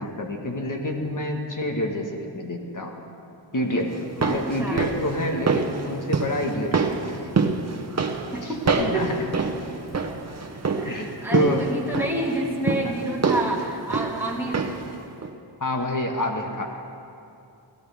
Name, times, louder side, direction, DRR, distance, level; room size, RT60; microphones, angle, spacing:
voice 1, 0.0-2.9 3.5-7.3 8.4-8.5 8.8-9.2 10.9-11.7 15.6-16.7, left 1 dB, 45° left, 2 dB, 1.7 m, -28 dB
sound 1, 3.9-14.9 15.2-15.3, right 4 dB, 35° right, 1.0 m, -27 dB
voice 2, 4.3-4.8 8.3-9.2 10.8-14.7, right 1 dB, 5° right, -4 dB, 2.3 m, -29 dB
22.5 x 16.5 x 3.6 m, 2.6 s
wide cardioid pair, 145°, 45 cm